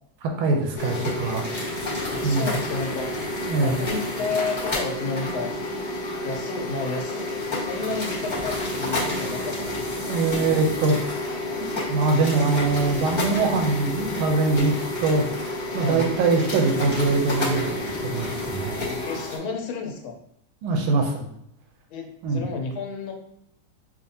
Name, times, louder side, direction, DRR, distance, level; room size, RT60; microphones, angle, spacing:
voice 1, 0.2-1.5 2.2-2.6 3.5-3.8 10.0-11.2 11.6-15.3 15.7-18.9 20.6-21.3 22.2-22.4, right 3 dB, 85° right, 3 dB, 1.5 m, -23 dB
sound 1, 0.7-19.4, left 1 dB, 15° left, 1.1 m, -29 dB
voice 2, 2.1-3.1 3.6-5.5 6.2-10.2 15.8-16.1 19.1-20.2 21.9-23.1, left 4 dB, 75° left, 3 dB, 1.5 m, -31 dB
5.2 x 2.5 x 2.7 m, 0.74 s
omnidirectional pair, 2.3 m